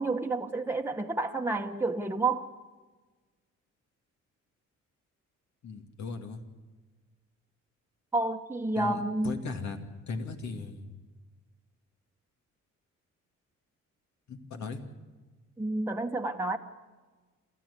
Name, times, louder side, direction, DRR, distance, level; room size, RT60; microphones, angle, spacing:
voice 1, 0.0-2.5 8.1-9.4 15.6-16.6, right 2 dB, 10° right, 1.3 m, -30 dB
voice 2, 5.6-6.4 8.7-9.8 10.1-10.9 14.3-14.8, left 4 dB, 65° left, 2.5 m, -37 dB
27.5 x 14.0 x 8.5 m
cardioid pair, 90°, 30 cm